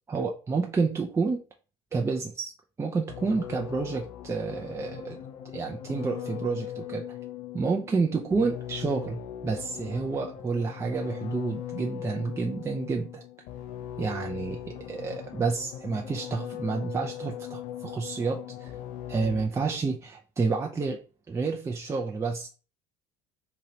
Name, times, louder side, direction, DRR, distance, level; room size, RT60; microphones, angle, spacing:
voice 1, 0.1-1.4 1.9-2.5 2.8-5.2 5.5-7.1 7.5-13.2 14.0-18.7 19.1-21.0 21.3-22.5, right 4 dB, 20° right, 0.5 m, -29 dB
sound 1, 3.1-19.7, left 11 dB, 65° left, 0.5 m, -40 dB
2.8 x 2.8 x 3.0 m
hypercardioid pair, 80°, 14 cm